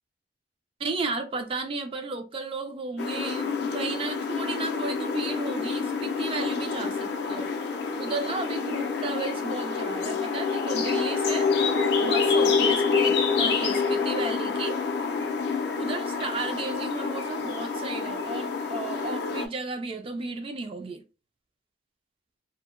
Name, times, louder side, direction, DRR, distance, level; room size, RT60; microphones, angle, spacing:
voice 1, 0.8-7.5 8.0-11.5 12.0-14.8 15.8-21.0, right 3 dB, 30° right, 0.3 m, -34 dB
sound 1, 3.0-19.5, left 5 dB, 60° left, 0.4 m, -27 dB
2.7 x 2.0 x 2.4 m
head